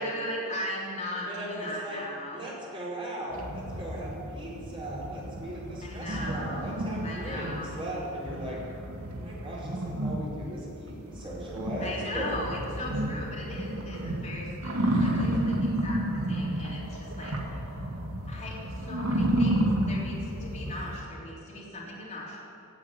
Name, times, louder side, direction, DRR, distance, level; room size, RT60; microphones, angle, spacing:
voice 1, 0.0-2.4 5.8-7.9 11.8-17.8 18.3-22.4, left 1 dB, 30° left, -5 dB, 3.4 m, -38 dB
voice 2, 1.3-2.0 2.3-8.6 9.1-12.4, right 1 dB, 25° right, -5 dB, 4.9 m, -38 dB
sound 1, 3.3-21.0, right 1 dB, 75° right, 2.2 m, -31 dB
17.0 x 8.7 x 9.4 m, 2.6 s
head